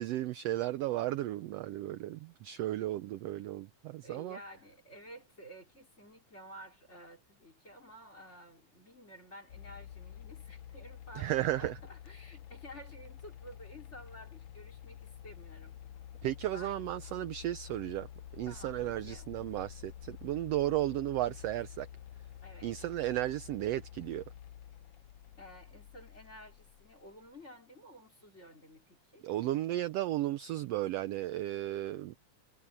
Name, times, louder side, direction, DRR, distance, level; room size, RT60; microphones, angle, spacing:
voice 1, 0.0-4.4 11.1-11.8 16.2-18.1 18.3-21.9 22.6-24.2 29.2-32.1, right 14 dB, 85° right, 1.4 m, -34 dB
voice 2, 4.0-15.8 16.5-16.8 18.5-19.3 22.4-22.7 25.4-29.2, equal, 20° left, 3.6 m, -52 dB
sound 1, 9.5-27.3, left 10 dB, 85° left, 1.2 m, -49 dB
omnidirectional pair, 3.5 m